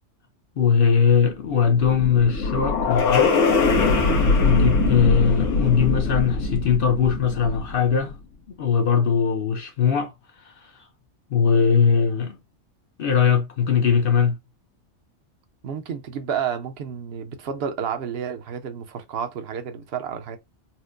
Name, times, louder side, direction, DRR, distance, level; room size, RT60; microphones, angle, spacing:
voice 1, 0.6-3.4 4.4-8.2 8.6-10.1 10.4-10.7 11.3-12.4 13.0-14.4, left 6 dB, 55° left, 0.8 m, -20 dB
sound 1, 1.4-7.9, left 3 dB, 75° left, 1.3 m, -22 dB
voice 2, 15.6-20.4, right 7 dB, 55° right, 0.9 m, -30 dB
4.3 x 2.1 x 2.5 m
omnidirectional pair, 1.3 m